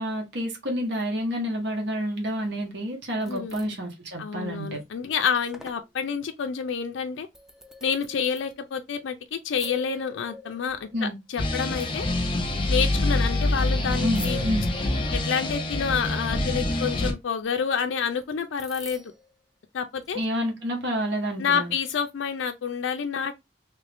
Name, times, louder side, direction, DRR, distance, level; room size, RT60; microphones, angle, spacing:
voice 1, 0.0-4.8 10.9-11.2 14.0-14.7 20.1-21.7, equal, 70° right, 1.1 m, -29 dB
sound 1, 3.0-3.7 4.4-4.8 5.1-5.2 5.5-5.9 6.7-6.8 7.3-8.8 9.5-11.0 11.8-12.8 14.1-15.5 17.4-17.5 18.2-18.3 18.6-19.3 20.0-20.3, left 1 dB, 5° right, 0.3 m, -43 dB
voice 2, 3.3-3.8 4.2-7.3 7.8-12.1 12.7-14.4 15.1-19.0 19.7-20.2 21.4-23.3, left 7 dB, 80° left, 0.4 m, -28 dB
sound 2, 11.4-17.1, left 1 dB, 25° left, 0.7 m, -26 dB
3.1 x 2.5 x 3.3 m
head